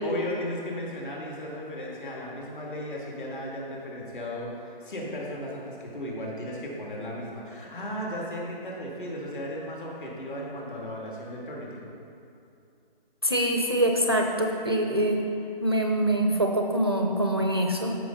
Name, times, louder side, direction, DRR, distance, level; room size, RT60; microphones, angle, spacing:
voice 1, 0.0-11.9, equal, 60° left, -3 dB, 2.3 m, -36 dB
voice 2, 13.2-15.2 15.6-18.0, right 1 dB, 25° right, 1 dB, 0.4 m, -24 dB
13.0 x 5.6 x 3.9 m, 2.6 s
hypercardioid pair, 165°, 29 cm